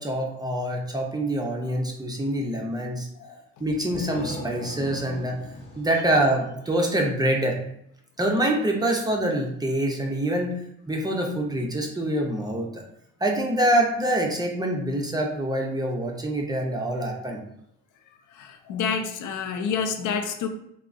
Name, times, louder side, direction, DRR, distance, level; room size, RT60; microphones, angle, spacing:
voice 1, 0.0-3.1 3.6-5.4 5.8-7.6 8.2-10.6 10.9-12.8 13.2-17.4, right 1 dB, 15° right, 0 dB, 0.5 m, -25 dB
sound 1, 3.7-7.3, left 1 dB, 40° left, 0.8 m, -40 dB
voice 2, 18.3-20.5, left 6 dB, 80° left, 7 dB, 0.5 m, -28 dB
3.4 x 2.0 x 2.5 m, 0.77 s
cardioid pair, 90°, 30 cm